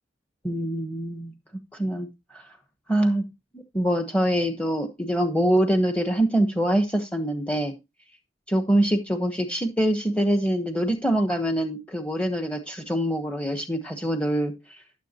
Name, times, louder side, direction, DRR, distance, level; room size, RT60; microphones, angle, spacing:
voice 1, 0.4-1.3 1.7-2.5 2.9-3.2 3.5-7.7 8.5-14.8, right 1 dB, 5° left, 4 dB, 1.0 m, -24 dB
12.5 x 7.3 x 2.9 m, 0.24 s
head